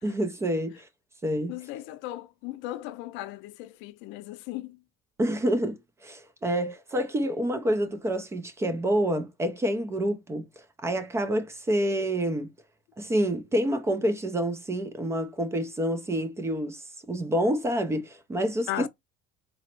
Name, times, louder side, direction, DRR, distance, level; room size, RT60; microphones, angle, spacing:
voice 1, 0.0-0.9 1.2-1.5 5.2-10.4 10.8-12.5 13.0-18.9, equal, 15° right, 0.4 m, -28 dB
voice 2, 1.5-4.8 18.7-18.9, left 15 dB, 65° left, 0.5 m, -36 dB
4.1 x 2.0 x 4.3 m
cardioid pair, 175°, 21 cm